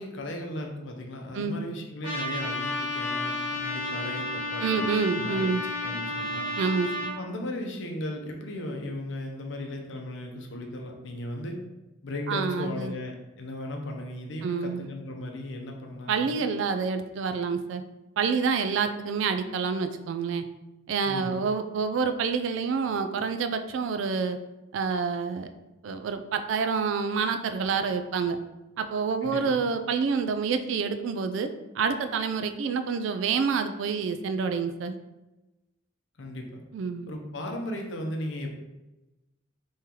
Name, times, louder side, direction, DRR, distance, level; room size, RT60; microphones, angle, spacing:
voice 1, 0.0-4.9 5.2-6.5 7.1-11.6 12.0-16.3 21.1-21.5 29.2-29.6 36.2-36.6 37.1-38.6, left 1 dB, 65° left, 2 dB, 0.6 m, -36 dB
Trumpet, 2.0-7.1, left 2 dB, 25° right, 1.0 m, -32 dB
voice 2, 4.6-5.6 6.6-7.1 12.3-12.9 14.4-14.9 16.1-17.8 18.2-20.4 20.9-24.4 24.7-25.5 25.8-28.4 28.8-34.9 36.7-37.1, right 5 dB, 65° right, 8 dB, 0.3 m, -28 dB
3.7 x 3.0 x 2.9 m, 1.0 s
head